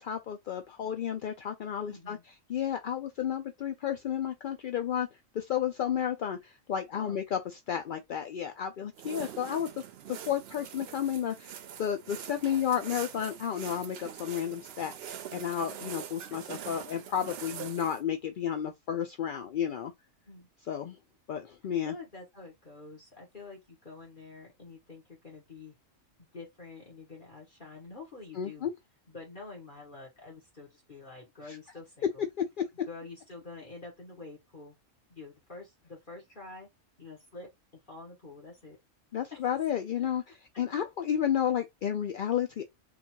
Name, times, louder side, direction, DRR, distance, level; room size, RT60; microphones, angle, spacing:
voice 1, 0.0-2.2 2.5-5.1 5.3-7.4 7.7-9.7 10.1-11.5 11.8-19.9 20.7-21.0 21.3-21.9 28.4-28.7 32.6-32.7 39.1-42.6, left 9 dB, 65° left, 0.5 m, -32 dB
voice 2, 1.9-2.2 7.0-7.2 9.2-9.6 16.3-16.5 20.2-20.5 21.8-25.7 26.2-28.7 29.1-32.3 32.9-34.7 35.1-36.7 37.0-37.5 37.9-38.8 39.3-39.4, left 3 dB, 40° left, 1.6 m, -47 dB
sound 1, 8.9-18.0, right 9 dB, 60° right, 0.7 m, -44 dB
3.9 x 2.4 x 4.5 m
omnidirectional pair, 1.4 m